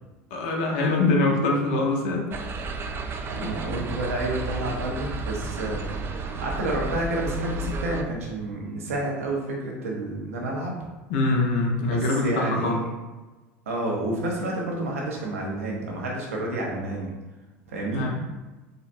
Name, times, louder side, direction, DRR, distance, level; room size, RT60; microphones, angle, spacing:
voice 1, 0.3-2.3 3.3-3.5 11.1-12.8 17.9-18.2, left 2 dB, 70° left, 0 dB, 0.7 m, -24 dB
sound 1, 2.3-8.0, right 3 dB, 35° right, 0.3 m, -32 dB
voice 2, 3.3-10.8 11.8-12.9 13.7-17.1 17.7-18.1, right 1 dB, 85° right, -2 dB, 0.8 m, -30 dB
3.8 x 2.1 x 2.5 m, 1.2 s
hypercardioid pair, 85°, 7 cm